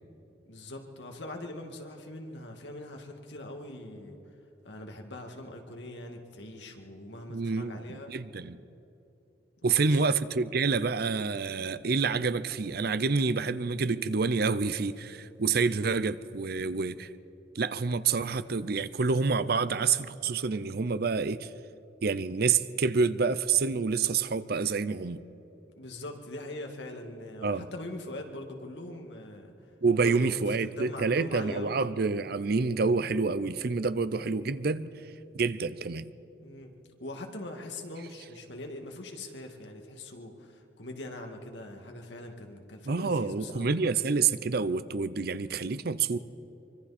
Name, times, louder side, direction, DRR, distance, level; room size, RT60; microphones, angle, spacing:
voice 1, 0.5-4.2 4.6-8.1 9.6-10.0 25.8-29.5 30.0-30.3 30.6-31.9 36.4-36.7 37.0-43.7, left 1 dB, 85° left, 3 dB, 2.2 m, -42 dB
voice 2, 7.3-8.6 9.6-17.1 17.5-21.5 22.0-25.2 27.4-27.7 29.8-34.9 35.3-36.1 42.8-46.2, right 4 dB, 60° right, 14 dB, 0.6 m, -28 dB
24.5 x 24.5 x 4.3 m, 2.9 s
head